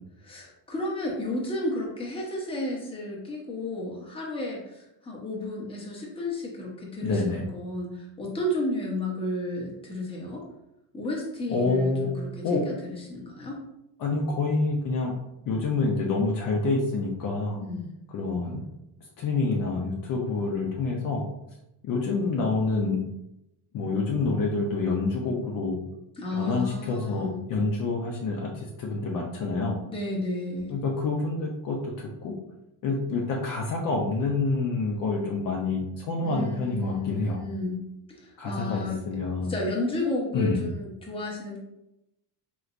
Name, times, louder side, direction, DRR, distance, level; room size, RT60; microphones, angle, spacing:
voice 1, 0.2-10.4 10.9-13.6 17.6-17.9 26.2-27.4 29.8-30.8 36.2-37.8 38.1-39.0 39.5-41.6, left 1 dB, 10° left, -3 dB, 0.8 m, -32 dB
voice 2, 7.0-7.4 11.5-12.1 12.4-12.6 14.0-15.1 15.5-17.6 18.1-18.6 19.2-21.2 21.8-23.0 23.7-25.8 26.4-29.8 30.7-32.3 32.8-37.4 38.4-39.5 40.3-40.7, left 3 dB, 50° left, -1 dB, 0.6 m, -27 dB
3.2 x 3.0 x 2.5 m, 0.88 s
cardioid pair, 115°, 44 cm